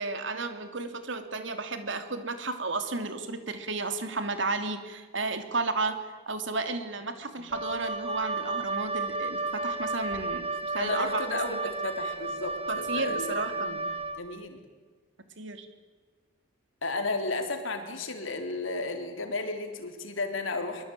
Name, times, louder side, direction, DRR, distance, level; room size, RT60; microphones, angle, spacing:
voice 1, 0.0-11.6 12.7-13.8 15.4-15.7, right 3 dB, 65° right, 8 dB, 2.9 m, -33 dB
Wind instrument woodwind instrument, 7.5-14.2, right 3 dB, 30° right, 2.8 m, -33 dB
voice 2, 10.8-13.8 14.2-14.6 16.8-20.8, left 3 dB, 80° left, 6 dB, 3.7 m, -33 dB
23.5 x 23.5 x 9.2 m, 1.4 s
head